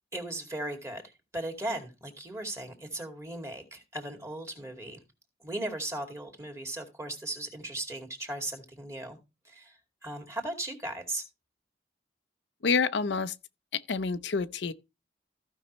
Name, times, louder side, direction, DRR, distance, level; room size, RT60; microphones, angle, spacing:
voice 1, 0.1-5.0 5.4-9.2 9.4-11.2, right 1 dB, 15° right, 2.2 m, -37 dB
voice 2, 12.6-13.3 13.7-14.7, left 5 dB, 75° left, 0.6 m, -28 dB
15.0 x 5.5 x 3.0 m
head